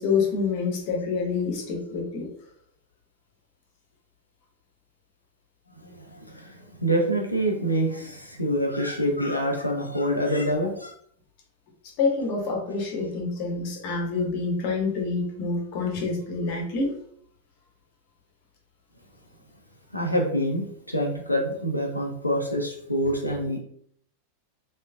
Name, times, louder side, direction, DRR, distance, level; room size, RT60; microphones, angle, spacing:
voice 1, 0.0-2.3 12.0-16.9, left 4 dB, 45° left, 0 dB, 1.1 m, -27 dB
voice 2, 5.7-10.9 19.9-23.6, equal, 85° left, 0 dB, 0.7 m, -26 dB
3.2 x 3.2 x 2.3 m, 0.63 s
figure-of-eight pair, 90°, 0 cm